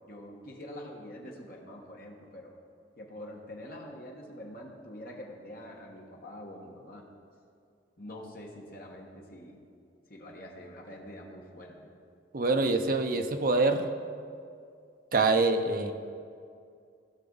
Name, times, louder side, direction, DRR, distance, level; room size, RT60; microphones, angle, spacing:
voice 1, 0.1-2.5 3.0-7.0 8.0-9.6 10.1-11.9, left 1 dB, 50° left, -1 dB, 1.3 m, -45 dB
voice 2, 12.3-13.9 15.1-15.9, right 3 dB, 45° right, 6 dB, 0.6 m, -25 dB
15.5 x 5.9 x 3.9 m, 2.4 s
head